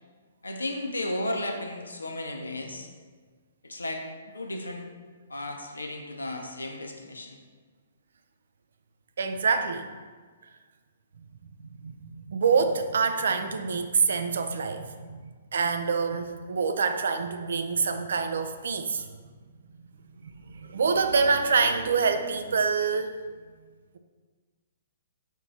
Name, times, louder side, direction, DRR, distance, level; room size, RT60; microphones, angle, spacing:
voice 1, 0.4-2.9 3.6-4.0 4.3-4.9 5.3-7.4, left 1 dB, 85° left, 3 dB, 0.6 m, -34 dB
voice 2, 9.2-9.9 11.2-15.2 15.5-19.1 20.2-23.1, right 5 dB, 65° right, 8 dB, 0.4 m, -26 dB
4.4 x 2.7 x 4.5 m, 1.5 s
figure-of-eight pair, 125°, 0 cm